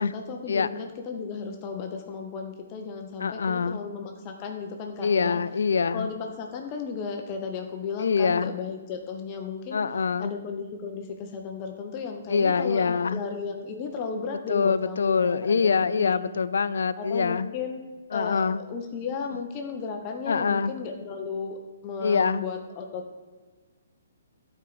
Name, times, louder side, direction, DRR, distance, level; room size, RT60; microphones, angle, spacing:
voice 1, 0.0-5.4 5.9-9.8 10.2-16.2 17.0-17.8 18.1-23.2, left 5 dB, 30° left, 3 dB, 0.6 m, -35 dB
voice 2, 3.2-3.8 5.0-6.1 8.0-8.5 9.7-10.3 12.3-13.2 14.5-17.5 18.1-18.6 20.3-20.7 22.0-22.4, left 5 dB, 80° left, 15 dB, 0.3 m, -24 dB
9.2 x 4.5 x 3.9 m, 1.4 s
hypercardioid pair, 145°, 0 cm